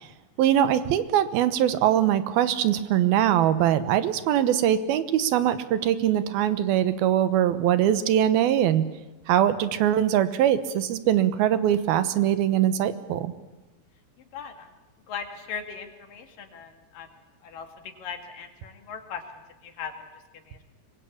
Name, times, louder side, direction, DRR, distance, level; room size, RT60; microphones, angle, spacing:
voice 1, 0.4-8.8 9.3-13.3, right 11 dB, 85° right, 12 dB, 3.0 m, -22 dB
voice 2, 14.2-14.8 15.1-17.1 17.4-19.2 19.6-19.9 20.5-20.6, left 6 dB, 65° left, 5 dB, 3.8 m, -39 dB
24.5 x 21.5 x 8.5 m, 1.1 s
omnidirectional pair, 4.3 m